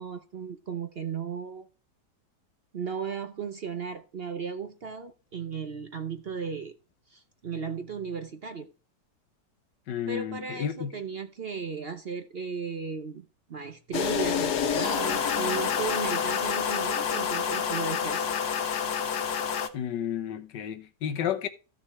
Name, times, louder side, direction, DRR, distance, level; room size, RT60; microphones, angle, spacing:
voice 1, 0.0-1.7 2.7-6.7 7.1-8.7 10.1-18.4, right 6 dB, 50° right, 0.8 m, -35 dB
voice 2, 9.9-11.0 19.7-21.5, left 9 dB, 90° left, 1.7 m, -32 dB
sound 1, 13.9-19.7, left 7 dB, 65° left, 1.5 m, -28 dB
14.5 x 6.5 x 3.1 m
omnidirectional pair, 1.8 m